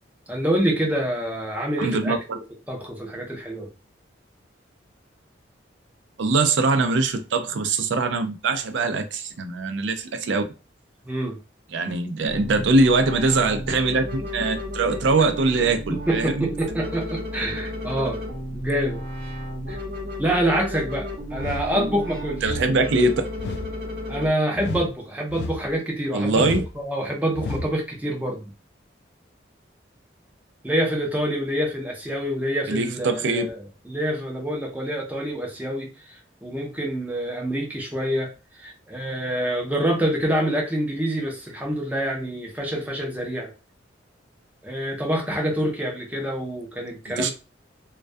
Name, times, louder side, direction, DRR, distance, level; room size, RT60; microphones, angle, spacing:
voice 1, 0.3-2.4 2.7-3.7 11.0-11.4 15.2-15.3 15.9-18.2 18.5-19.0 19.7-19.8 20.2-22.6 24.1-26.5 26.7-28.5 30.6-33.6 33.8-38.3 38.6-43.5 44.6-47.3, right 1 dB, 10° right, 0.5 m, -26 dB
voice 2, 1.8-2.4 6.2-10.4 11.7-16.5 21.7-21.9 22.4-23.2 26.1-26.6 32.7-33.5 47.2-47.3, right 3 dB, 75° right, 0.4 m, -22 dB
sound 1, 12.3-24.3, left 1 dB, 55° right, 0.7 m, -33 dB
sound 2, 21.3-21.7 22.4-22.7 23.4-23.7 24.6-24.9 25.3-25.7 26.4-26.7 27.3-27.7, left 3 dB, 60° left, 0.3 m, -32 dB
2.2 x 2.2 x 2.5 m
head